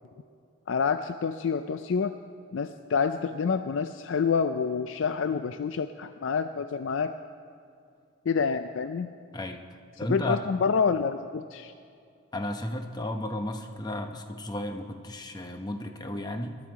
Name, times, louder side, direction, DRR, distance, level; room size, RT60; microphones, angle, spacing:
voice 1, 0.7-2.1 2.5-7.1 8.3-9.1 10.0-11.7, left 5 dB, 70° left, 10 dB, 0.4 m, -27 dB
voice 2, 9.3-9.6 10.0-10.4 12.3-16.6, left 1 dB, 20° left, 5 dB, 0.8 m, -33 dB
20.0 x 12.0 x 4.7 m, 2.4 s
head